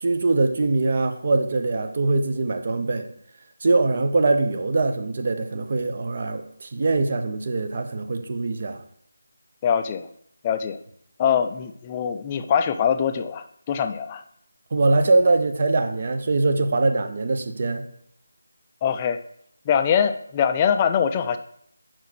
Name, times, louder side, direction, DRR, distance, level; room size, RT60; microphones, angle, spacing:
voice 1, 0.0-3.1 3.6-8.8 14.7-17.8, right 3 dB, 40° right, 6 dB, 0.8 m, -22 dB
voice 2, 9.6-10.1 10.4-10.8 11.2-14.2 18.8-19.2 19.7-21.4, left 7 dB, 20° left, 8 dB, 0.4 m, -23 dB
6.0 x 4.5 x 6.2 m, 0.70 s
figure-of-eight pair, 160°, 0 cm